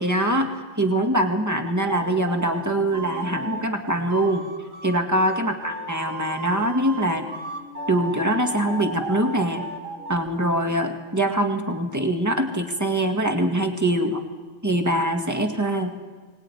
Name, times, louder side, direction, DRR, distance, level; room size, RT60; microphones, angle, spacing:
voice 1, 0.0-4.5 4.8-7.3 7.9-9.6 10.1-14.2 14.6-15.9, right 1 dB, 15° right, 5 dB, 2.0 m, -23 dB
sound 1, 1.6-10.2, right 2 dB, 80° right, 2.4 m, -35 dB
22.0 x 19.5 x 9.9 m, 1.4 s
omnidirectional pair, 1.4 m